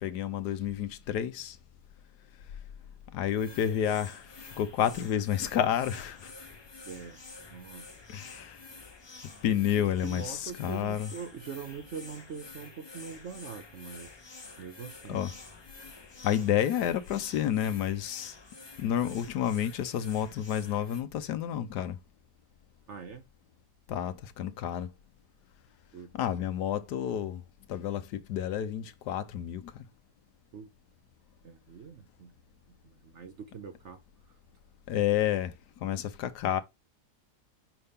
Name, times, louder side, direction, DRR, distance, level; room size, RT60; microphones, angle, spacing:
voice 1, 0.0-1.6 3.1-6.3 8.1-8.6 9.4-11.1 15.1-15.3 16.2-18.3 18.8-22.0 23.9-24.9 26.1-27.4 27.7-29.8 34.9-35.5 35.8-36.6, left 10 dB, 75° left, 1.3 m, -30 dB
sound 1, 3.3-21.0, left 3 dB, 20° left, 0.7 m, -49 dB
voice 2, 6.8-7.2 7.5-8.0 9.7-14.3 14.6-15.3 22.9-23.2 25.9-26.1 30.5-30.7 31.4-32.4 32.8-34.0, right 6 dB, 60° right, 0.8 m, -43 dB
5.6 x 5.5 x 3.5 m
omnidirectional pair, 1.8 m